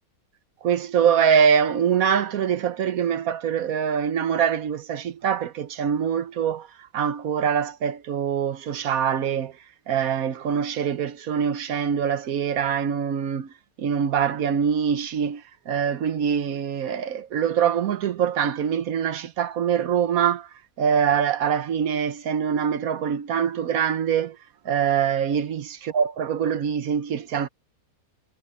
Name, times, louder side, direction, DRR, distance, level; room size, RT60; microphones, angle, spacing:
voice 1, 0.6-6.7 6.9-9.5 9.9-13.5 13.8-20.5 20.8-24.4 24.6-27.5, right 8 dB, 70° right, 1.4 m, -24 dB
omnidirectional pair, 1.5 m